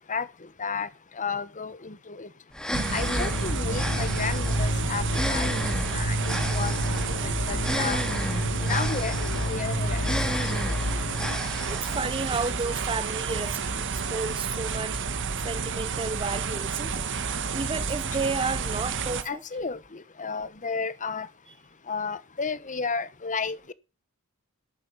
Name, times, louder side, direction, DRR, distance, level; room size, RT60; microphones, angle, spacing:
voice 1, 1.2-2.3 2.9-5.5 5.9-6.7 7.1-8.0 8.6-9.1 9.4-10.0 10.4-10.5 19.2-21.3 21.9-23.7, left 5 dB, 35° left, 1.1 m, -32 dB
sound 1, 2.5-12.5, left 1 dB, 5° left, 2.0 m, -34 dB
sound 2, 2.7-19.2, right 5 dB, 55° right, 1.4 m, -31 dB
sound 3, 3.0-11.4, equal, 60° left, 3.4 m, -29 dB
voice 2, 11.7-15.0 15.4-17.1 17.5-19.4, right 4 dB, 25° right, 0.6 m, -32 dB
11.5 x 8.6 x 7.4 m
head